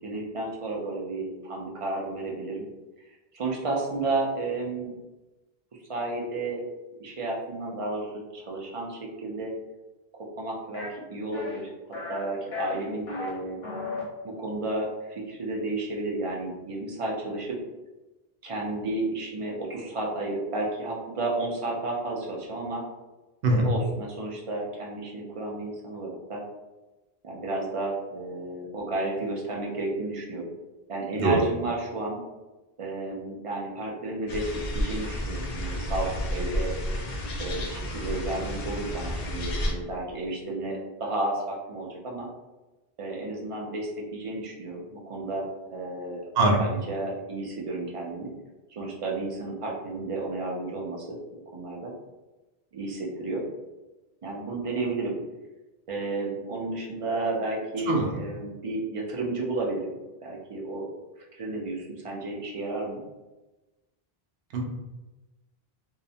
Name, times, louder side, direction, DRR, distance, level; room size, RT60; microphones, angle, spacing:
voice 1, 0.0-2.7 3.1-4.9 5.9-6.6 7.0-9.5 10.4-11.7 12.1-13.6 14.2-17.6 18.4-22.8 23.5-26.4 27.2-30.5 30.9-32.2 32.8-36.7 37.4-42.3 43.0-46.2 46.6-48.3 48.7-51.2 51.5-51.9 52.7-53.4 54.2-55.2 55.9-59.9 60.2-60.9 61.4-63.0, right 2 dB, 45° right, -2 dB, 0.4 m, -32 dB
sound 1, 10.7-10.9 11.3-11.6 11.9-12.2 12.5-13.3 13.6-14.0, left 3 dB, 85° left, 1.0 m, -34 dB
voice 2, 23.4-23.7 31.1-31.4 46.4-46.6 57.9-58.1 64.5-64.6, right 2 dB, 80° right, 0 dB, 0.8 m, -22 dB
sound 2, 34.3-39.7, equal, 55° left, 0.5 m, -31 dB
2.7 x 2.1 x 2.7 m, 1.1 s
omnidirectional pair, 1.0 m